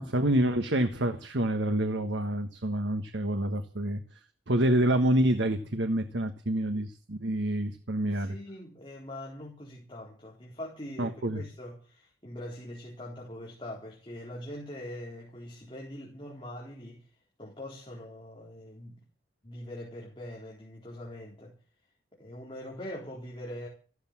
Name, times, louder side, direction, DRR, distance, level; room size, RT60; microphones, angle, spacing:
voice 1, 0.0-4.2 4.5-8.3 11.0-11.4, right 1 dB, 75° right, 1.4 m, -27 dB
voice 2, 7.9-17.1 17.4-18.9 19.4-21.5 22.2-23.7, left 1 dB, 25° left, 3.9 m, -43 dB
14.5 x 13.0 x 7.4 m
head